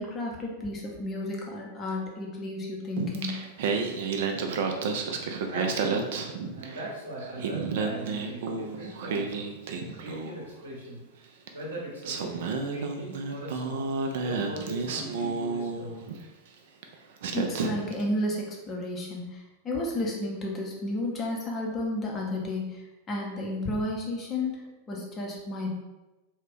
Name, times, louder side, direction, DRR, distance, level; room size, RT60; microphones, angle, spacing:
voice 1, 0.0-3.5 17.3-24.6 24.9-25.7, left 1 dB, 25° left, -1 dB, 0.7 m, -32 dB
Singing, 3.0-6.9 7.2-10.5 11.5-11.6 12.0-16.2 16.8-16.9 17.2-18.0, right 4 dB, 55° right, 0.3 m, -31 dB
voice 2, 5.2-9.5 9.9-11.0 11.5-13.9 14.2-16.0, right 1 dB, 70° right, -5 dB, 0.8 m, -40 dB
2.4 x 2.2 x 3.5 m, 1.1 s
figure-of-eight pair, 90°, 0 cm